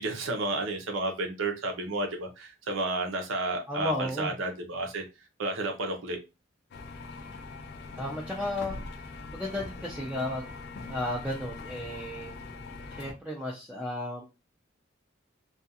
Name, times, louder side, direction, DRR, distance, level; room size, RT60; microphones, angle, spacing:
voice 1, 0.0-5.0 5.4-6.2, right 2 dB, 80° right, 3 dB, 0.7 m, -31 dB
voice 2, 3.7-4.3 8.0-8.8 9.3-10.5 10.9-12.3 13.0-14.2, left 1 dB, 5° right, -4 dB, 0.4 m, -33 dB
sound 1, 6.7-13.1, left 3 dB, 55° left, 0.4 m, -42 dB
2.4 x 2.4 x 2.7 m, 0.27 s
head